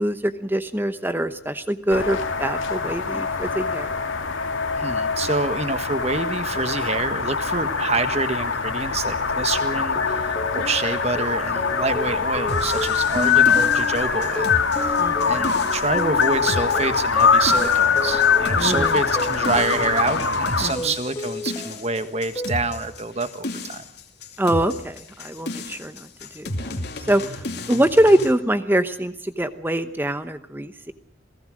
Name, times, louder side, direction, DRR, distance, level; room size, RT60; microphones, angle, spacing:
voice 1, 0.0-3.9 15.0-15.4 18.6-19.0 20.6-20.9 24.4-26.1 26.4-26.7 27.1-27.2 27.7-30.9, right 1 dB, 10° right, 11 dB, 0.9 m, -23 dB
sound 1, 1.9-20.7, left 6 dB, 80° left, 2.4 m, -23 dB
voice 2, 4.8-15.0 15.3-23.8, right 3 dB, 35° right, 10 dB, 1.5 m, -27 dB
sound 2, 10.0-20.4 20.8-22.0 22.4-22.9, left 2 dB, 20° left, 2.5 m, -33 dB
sound 3, 12.5-28.3, left 2 dB, 55° left, 2.6 m, -33 dB
28.0 x 18.0 x 6.4 m, 0.68 s
head